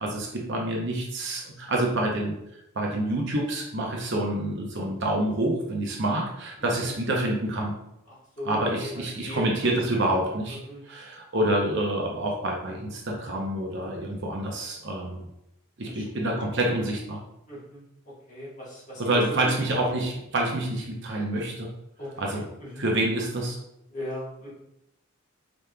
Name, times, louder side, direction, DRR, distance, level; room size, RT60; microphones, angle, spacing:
voice 1, 0.0-2.3 2.7-7.7 8.4-10.6 10.9-15.2 15.8-17.2 19.0-21.7 22.2-22.5 22.8-23.6, right 1 dB, 55° right, 0 dB, 0.7 m, -27 dB
voice 2, 8.1-9.5 9.9-10.0 10.5-10.8 15.9-16.3 17.5-19.5 22.0-22.9 23.9-24.5, equal, 35° left, -7 dB, 1.4 m, -38 dB
5.1 x 3.1 x 2.3 m, 0.81 s
head